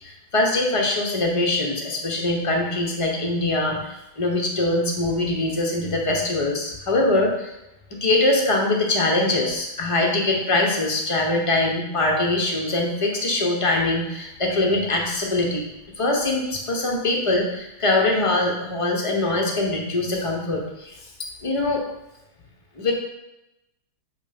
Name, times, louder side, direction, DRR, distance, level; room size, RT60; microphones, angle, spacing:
voice 1, 0.0-7.5 7.9-15.6 16.0-20.9 21.4-21.9 22.8-22.9, left 2 dB, 35° left, 0 dB, 0.5 m, -23 dB
8.0 x 3.3 x 5.1 m, 0.92 s
omnidirectional pair, 2.2 m